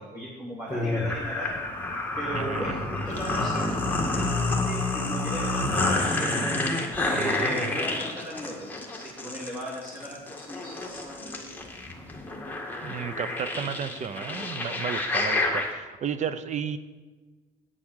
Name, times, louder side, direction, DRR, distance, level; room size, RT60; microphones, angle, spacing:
voice 1, 0.0-1.5 2.1-6.3 7.0-11.7, equal, 15° right, -6 dB, 2.8 m, -37 dB
sound 1, 0.7-15.7, left 2 dB, 10° left, 1.9 m, -29 dB
voice 2, 2.3-2.8 7.2-7.8 12.8-16.8, right 7 dB, 45° right, 13 dB, 0.7 m, -33 dB
9.1 x 8.4 x 6.4 m, 1.3 s
cardioid pair, 110°, 17 cm